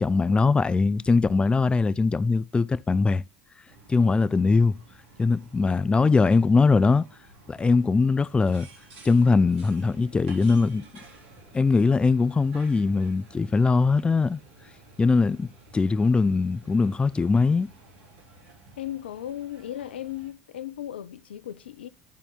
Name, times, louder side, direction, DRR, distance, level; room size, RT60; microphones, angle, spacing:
voice 1, 0.0-3.2 3.9-4.8 5.2-7.1 7.5-8.7 9.0-10.8 11.5-14.4 15.0-17.7, left 4 dB, 20° left, 0.4 m, -21 dB
sound 1, 3.7-20.3, right 2 dB, 80° right, 4.0 m, -52 dB
voice 2, 18.8-21.9, left 12 dB, 85° left, 0.4 m, -36 dB
10.5 x 4.2 x 3.5 m
hypercardioid pair, 70°, 6 cm